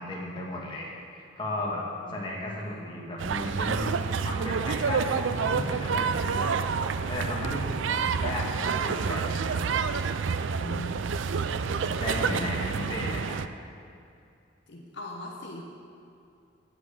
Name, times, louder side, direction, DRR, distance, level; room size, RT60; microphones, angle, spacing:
voice 1, 0.0-3.9 4.2-9.9 11.8-13.4, left 1 dB, 25° left, -3 dB, 1.7 m, -35 dB
voice 2, 2.5-2.8 10.5-11.3 11.9-12.4 14.7-15.6, left 1 dB, 60° left, 0 dB, 0.9 m, -41 dB
sound 1, 3.2-13.5, right 5 dB, 75° right, 0.4 m, -28 dB
8.0 x 8.0 x 8.3 m, 2.5 s
head